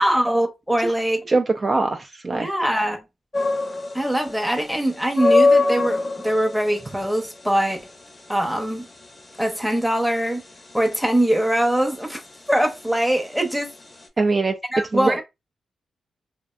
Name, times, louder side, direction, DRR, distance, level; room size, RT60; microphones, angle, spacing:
voice 1, 0.0-1.2 2.3-3.0 3.9-7.8 8.3-8.9 9.4-10.4 10.7-12.2 12.5-13.7 14.7-15.2, right 1 dB, ahead, 0.7 m, -22 dB
voice 2, 1.3-2.5 14.2-14.6 14.9-15.2, right 3 dB, 40° right, 0.3 m, -22 dB
sound 1, 3.3-14.1, left 3 dB, 35° left, 0.7 m, -25 dB
2.5 x 2.1 x 2.3 m
cardioid pair, 65°, 0 cm